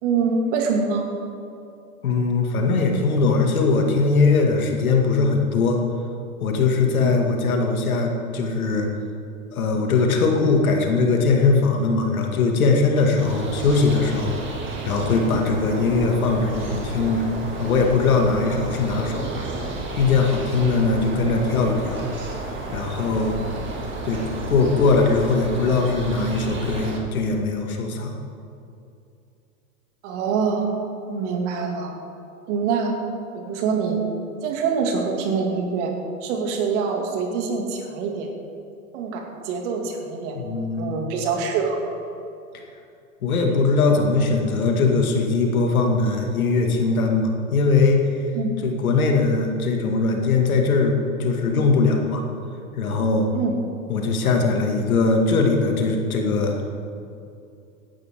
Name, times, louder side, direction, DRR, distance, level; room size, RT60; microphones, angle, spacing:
voice 1, 0.0-1.1 7.0-7.1 30.0-30.7 31.1-31.9 32.5-32.9 33.3-34.0 34.4-35.9 36.2-38.3 38.9-40.4 40.8-41.9 48.3-48.5 53.3-53.5, right 5 dB, 55° right, 1 dB, 2.7 m, -25 dB
voice 2, 2.0-5.8 6.4-8.9 9.5-14.4 14.8-17.2 17.6-19.3 19.9-22.0 22.7-23.4 24.0-24.2 24.5-28.1 40.3-40.9 42.5-42.6 43.2-48.2 48.6-52.2 52.7-53.3 53.9-56.7, left 4 dB, 75° left, 2 dB, 2.4 m, -20 dB
sound 1, 13.2-27.0, right 3 dB, 25° right, 2.6 m, -32 dB
16.0 x 12.0 x 3.8 m, 2.6 s
hypercardioid pair, 110°, 43 cm